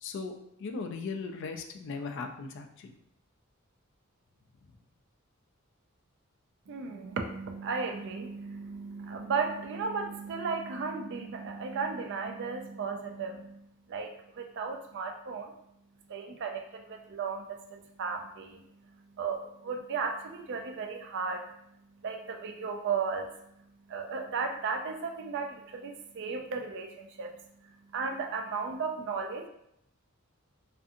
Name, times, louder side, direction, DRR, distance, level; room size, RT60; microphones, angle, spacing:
voice 1, 0.0-0.3 0.6-2.9, left 4 dB, 60° left, 4 dB, 0.3 m, -37 dB
voice 2, 6.7-15.5 16.1-21.5 22.0-23.3 23.9-27.3 27.6-29.5, right 5 dB, 55° right, 5 dB, 0.4 m, -35 dB
2.6 x 2.5 x 2.5 m, 0.76 s
head